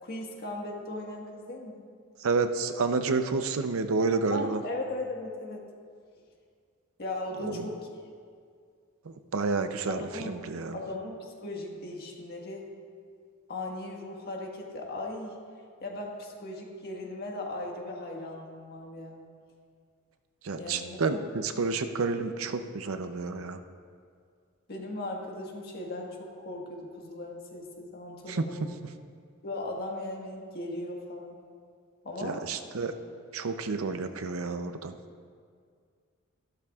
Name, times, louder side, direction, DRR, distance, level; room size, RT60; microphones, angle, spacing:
voice 1, 0.0-1.8 4.3-5.6 7.0-7.9 10.0-10.4 10.7-12.7 13.5-15.4 15.8-19.2 20.6-21.3 24.7-28.8 29.4-31.4 32.0-32.4, left 2 dB, 50° left, 0 dB, 1.5 m, -38 dB
voice 2, 2.2-4.6 7.4-7.7 9.3-10.8 20.4-23.6 28.3-28.4 32.2-32.9 33.3-34.9, right 4 dB, 75° right, 8 dB, 0.6 m, -30 dB
14.5 x 12.0 x 2.4 m, 2.1 s
head